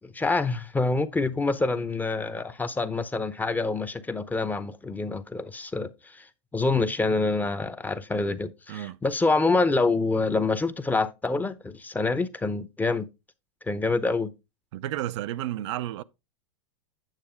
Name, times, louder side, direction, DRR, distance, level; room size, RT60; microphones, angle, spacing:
voice 1, 0.0-6.3 6.5-13.1 13.6-14.3, left 3 dB, 10° left, 0.8 m, -26 dB
voice 2, 8.7-9.0 14.7-16.0, right 13 dB, 65° right, 0.5 m, -32 dB
9.0 x 6.9 x 3.4 m
hypercardioid pair, 110°, 16 cm